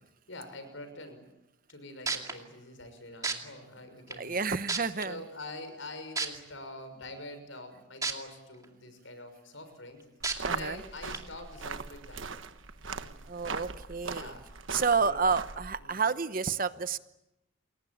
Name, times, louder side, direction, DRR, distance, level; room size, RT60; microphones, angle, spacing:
voice 1, 0.3-1.2 1.7-4.4 5.0-10.0 10.5-12.5 12.7-13.1 14.1-15.2 15.8-16.0, left 2 dB, 70° left, 9 dB, 6.4 m, -45 dB
sound 1, 1.7-1.8 2.1-2.3 3.2-3.3 4.1-4.2 4.7-5.0 6.2-6.3 8.0-8.1 8.6-8.7 10.2-10.3 11.1-11.2, right 4 dB, 15° right, 2.4 m, -30 dB
voice 2, 4.2-5.2 10.4-10.8 13.3-14.3 14.7-17.0, right 5 dB, 40° right, 12 dB, 1.0 m, -30 dB
sound 2, 10.2-15.8, right 4 dB, 70° right, 1.4 m, -40 dB
29.0 x 22.5 x 8.8 m, 0.92 s
head